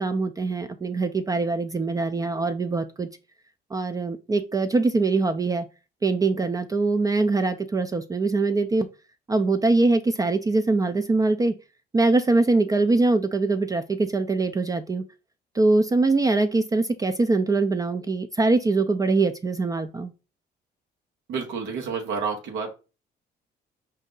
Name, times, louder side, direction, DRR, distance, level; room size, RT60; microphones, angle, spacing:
voice 1, 0.0-3.1 3.7-5.7 6.0-8.9 9.3-11.5 11.9-15.0 15.5-20.1, right 3 dB, 20° right, 0.4 m, -23 dB
voice 2, 21.3-22.7, right 5 dB, 90° right, 1.1 m, -29 dB
5.1 x 2.7 x 3.7 m
cardioid pair, 120°, 18 cm